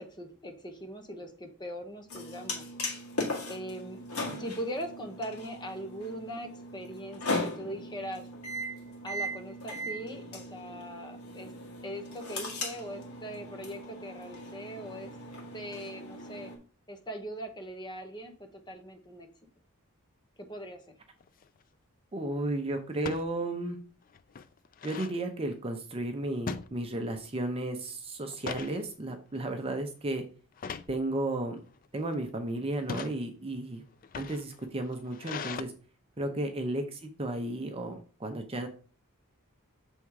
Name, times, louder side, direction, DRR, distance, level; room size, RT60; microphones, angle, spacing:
voice 1, 0.0-2.7 3.5-4.0 4.4-8.3 9.0-11.5 11.8-15.1 15.5-16.5 16.9-19.3 20.4-20.9, equal, 20° left, 5 dB, 1.0 m, -41 dB
sound 1, 2.1-16.6, left 1 dB, 75° left, 1.9 m, -38 dB
sound 2, 21.2-21.6 23.0-23.3 23.8-23.9 24.1-25.2 26.5-27.3 27.6-27.8 28.2-28.8 29.4-29.6 30.6-31.0 31.7-32.2 32.7-33.2 33.9-35.6, left 6 dB, 40° left, 0.4 m, -40 dB
voice 2, 22.1-23.8 24.8-30.2 30.9-31.6 31.9-33.8 34.1-35.7 36.2-38.7, right 1 dB, 25° right, 5 dB, 0.7 m, -33 dB
6.9 x 3.6 x 4.7 m, 0.39 s
head